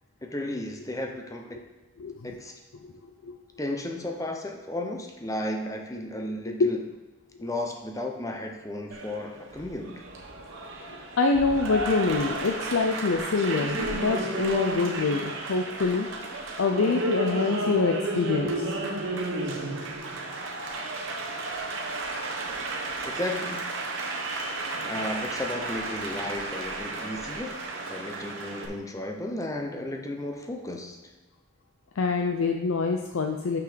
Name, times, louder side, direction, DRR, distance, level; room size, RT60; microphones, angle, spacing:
voice 1, 0.2-1.6 2.2-2.5 3.6-6.8 7.4-10.0 23.0-23.7 24.8-27.6 27.9-31.0, left 1 dB, 15° left, 2 dB, 0.6 m, -34 dB
voice 2, 2.0-2.4 3.0-3.3 6.6-6.8 7.4-7.5 11.2-16.1 16.6-18.7 32.0-33.6, left 4 dB, 70° left, 4 dB, 0.5 m, -25 dB
Applause, 8.9-28.7, right 2 dB, 60° right, 1.1 m, -33 dB
5.9 x 5.8 x 5.1 m, 1.2 s
head